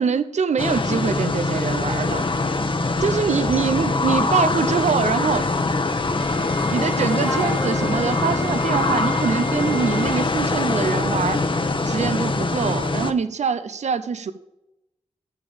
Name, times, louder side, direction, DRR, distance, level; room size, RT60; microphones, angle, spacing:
voice 1, 0.0-2.2 3.0-5.5 6.7-11.4 11.8-14.3, right 6 dB, 80° right, 12 dB, 0.6 m, -24 dB
sound 1, 0.6-13.1, left 3 dB, 45° left, 1.0 m, -23 dB
Wind instrument woodwind instrument, 6.2-10.3, right 4 dB, 30° right, 1.4 m, -40 dB
Wind instrument woodwind instrument 2, 7.2-10.1, equal, 5° left, 0.9 m, -34 dB
8.4 x 7.1 x 7.0 m, 0.89 s
cardioid pair, 50°, 12 cm